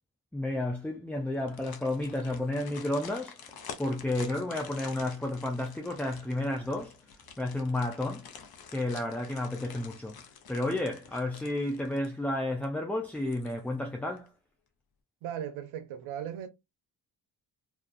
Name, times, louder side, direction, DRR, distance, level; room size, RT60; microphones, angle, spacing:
voice 1, 0.3-3.4 3.8-7.0 7.4-8.3 8.7-10.2 10.5-14.3, left 1 dB, 5° left, 0.3 m, -31 dB
sound 1, 1.3-12.3 12.6-12.7 13.2-13.8 14.2-14.3, left 6 dB, 50° left, 0.7 m, -49 dB
voice 2, 15.2-16.5, right 9 dB, 85° right, 0.6 m, -37 dB
2.4 x 2.3 x 2.4 m
supercardioid pair, 50°, 46 cm